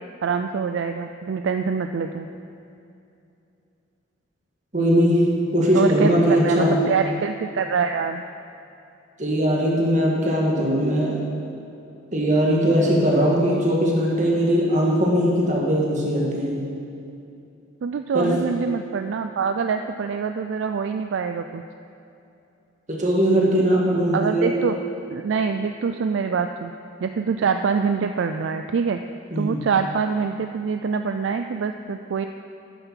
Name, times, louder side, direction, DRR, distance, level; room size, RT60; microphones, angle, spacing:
voice 1, 0.2-2.3 5.7-6.1 6.4-8.2 17.8-21.6 24.1-24.7 25.1-26.7 27.0-29.0 29.4-32.3, right 5 dB, 65° right, 7 dB, 0.3 m, -25 dB
voice 2, 4.7-5.2 5.5-6.8 9.2-11.3 12.1-16.6 18.1-18.3 22.9-24.6 29.3-29.5, equal, 40° right, -3 dB, 1.8 m, -20 dB
10.5 x 6.9 x 5.7 m, 2.7 s
head